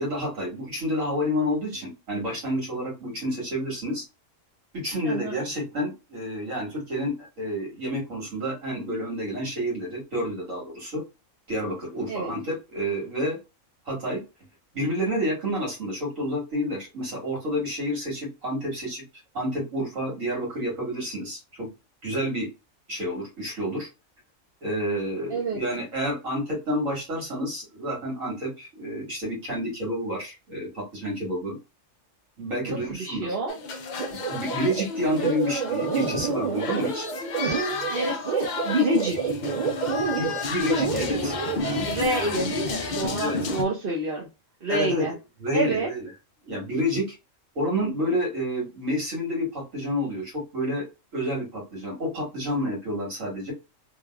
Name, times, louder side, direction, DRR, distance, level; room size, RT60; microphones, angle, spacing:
voice 1, 0.0-4.0 4.7-11.0 11.5-13.4 13.9-14.2 14.7-19.0 19.3-21.7 22.0-22.5 22.9-23.9 24.6-31.6 32.4-33.4 34.1-37.1 40.2-41.9 43.2-43.4 44.7-45.1 45.4-46.1 46.5-47.2 47.6-50.9 51.1-53.5, equal, 75° right, 1.9 m, -29 dB
voice 2, 5.0-5.4 12.1-12.3 25.3-25.6 32.6-33.6 37.9-39.3 41.9-44.3 44.6-45.1 45.5-45.9, right 1 dB, 50° right, 0.9 m, -27 dB
sound 1, 33.5-43.6, left 3 dB, 65° left, 0.4 m, -31 dB
sound 2, 34.0-41.6, right 6 dB, 35° right, 1.4 m, -29 dB
3.3 x 2.5 x 2.2 m
omnidirectional pair, 1.4 m